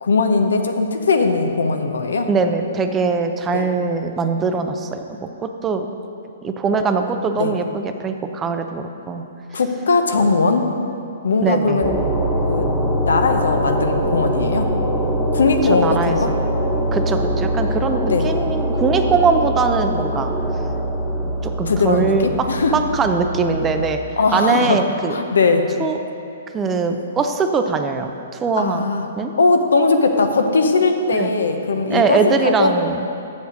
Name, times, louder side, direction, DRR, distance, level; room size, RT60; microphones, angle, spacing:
voice 1, 0.0-2.3 3.5-3.7 7.4-7.5 9.5-10.7 11.2-12.0 12.4-12.7 13.1-14.7 15.3-16.3 18.1-18.3 21.7-22.8 24.2-24.8 25.1-25.7 28.6-29.1 29.4-32.7, left 3 dB, 80° left, 6 dB, 0.8 m, -19 dB
voice 2, 2.3-5.8 6.4-9.2 11.4-11.8 15.8-16.3 16.9-20.3 21.4-22.3 22.7-24.0 24.3-25.2 25.8-26.0 26.5-28.8 29.2-29.3 31.1-31.3 31.9-33.1, right 4 dB, 15° right, 6 dB, 0.5 m, -21 dB
sound 1, 11.8-23.8, equal, 5° left, 0.9 m, -23 dB
7.2 x 6.6 x 6.4 m, 2.7 s
hypercardioid pair, 135°, 0 cm